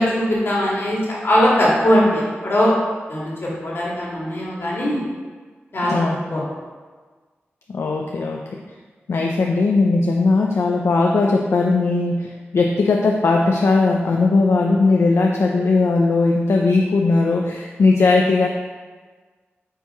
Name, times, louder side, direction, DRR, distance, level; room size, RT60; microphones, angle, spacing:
voice 1, 0.0-2.7 3.1-5.0 5.7-6.0 6.3-6.4, equal, 60° left, -5 dB, 1.8 m, -20 dB
voice 2, 5.9-6.5 7.7-8.4 9.1-18.5, left 3 dB, 80° left, 0 dB, 0.4 m, -18 dB
9.0 x 3.0 x 3.5 m, 1.4 s
cardioid pair, 60°, 4 cm